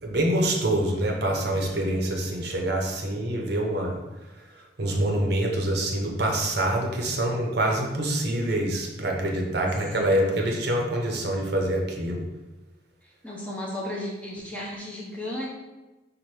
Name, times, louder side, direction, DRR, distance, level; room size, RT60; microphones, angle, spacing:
voice 1, 0.0-4.0 4.8-12.3, right 1 dB, 55° right, 1 dB, 0.8 m, -25 dB
voice 2, 10.0-10.4 13.0-15.5, left 1 dB, 5° left, -4 dB, 0.8 m, -35 dB
4.3 x 2.6 x 4.8 m, 1.1 s
head